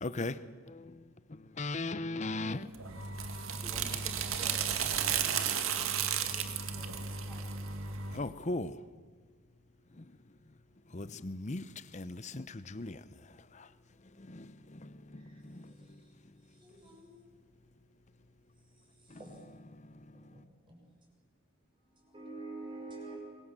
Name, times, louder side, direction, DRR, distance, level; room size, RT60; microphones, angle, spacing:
voice 1, 0.0-1.0 1.3-2.7 8.1-8.8 10.0-10.1 10.9-11.7 11.9-13.0 13.5-13.7 14.2-15.7 19.1-19.2, left 2 dB, 35° left, 0.8 m, -38 dB
voice 2, 2.3-2.8 3.5-7.8, equal, ahead, 5.4 m, -54 dB
sound 1, 2.7-8.2, right 7 dB, 85° right, 2.1 m, -33 dB
voice 3, 16.6-17.2 19.2-19.3 20.1-20.4 20.7-20.8 22.0-23.2, right 2 dB, 25° right, 6.1 m, -46 dB
27.0 x 22.0 x 7.6 m
head